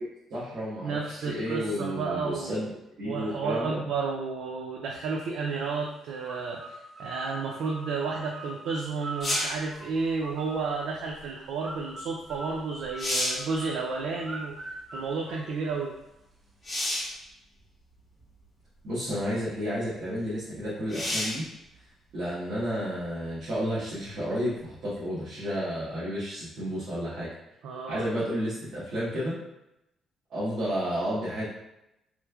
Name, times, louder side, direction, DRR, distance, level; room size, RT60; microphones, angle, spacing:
voice 1, 0.3-1.0 1.2-2.7 3.0-3.8 18.8-21.4 22.1-27.3 27.9-29.4 30.3-31.5, equal, 55° right, -10 dB, 1.0 m, -31 dB
voice 2, 0.8-2.6 3.0-15.9 27.6-28.0, right 4 dB, 85° right, -1 dB, 0.4 m, -32 dB
sound 1, 6.2-10.9 11.6-16.1, right 1 dB, 20° right, 0.4 m, -43 dB
sound 2, 9.2-9.6 12.3-12.4 12.8-13.5 16.6-17.2 18.2-18.3 20.9-21.5 25.1-25.2, left 1 dB, 30° left, 1.1 m, -30 dB
3.2 x 3.1 x 2.3 m, 0.88 s
cardioid pair, 175°, 0 cm